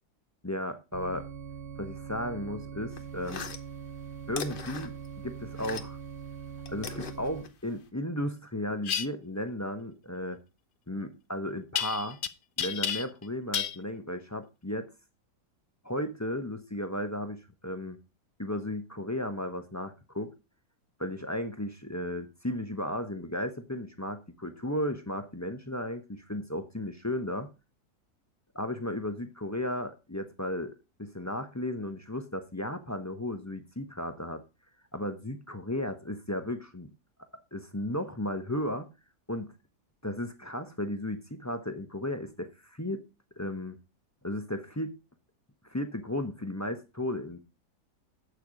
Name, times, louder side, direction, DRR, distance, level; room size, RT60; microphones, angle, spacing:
voice 1, 0.4-1.3 1.8-3.4 4.3-4.9 5.2-6.0 6.7-10.4 10.9-12.2 12.6-14.9 15.8-18.0 18.4-20.3 21.0-27.5 28.5-34.4 34.9-36.9 37.5-38.9 39.3-39.5 40.0-43.0 43.4-43.8 44.2-45.0 45.6-47.4, left 1 dB, 15° left, 0.7 m, -34 dB
sound 1, 0.9-7.4, right 7 dB, 70° right, 0.5 m, -42 dB
sound 2, 2.9-6.1 6.4-7.9, left 6 dB, 40° left, 1.0 m, -41 dB
sound 3, 8.8-9.1 11.8-12.3 12.6-13.2 13.5-13.8, left 8 dB, 85° left, 0.4 m, -30 dB
8.6 x 6.9 x 4.9 m
omnidirectional pair, 1.8 m